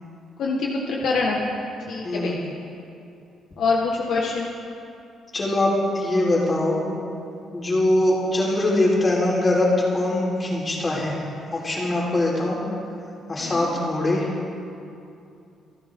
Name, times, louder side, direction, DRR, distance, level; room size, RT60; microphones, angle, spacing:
voice 1, 0.4-1.4 1.9-2.4 3.6-4.5 13.4-13.7, left 4 dB, 70° left, -2 dB, 1.7 m, -25 dB
voice 2, 2.0-2.4 5.3-6.8 7.5-11.3 11.5-12.6 13.3-14.3, left 1 dB, 30° left, -3 dB, 4.2 m, -22 dB
27.5 x 9.6 x 3.8 m, 2.6 s
cardioid pair, 90°, 0 cm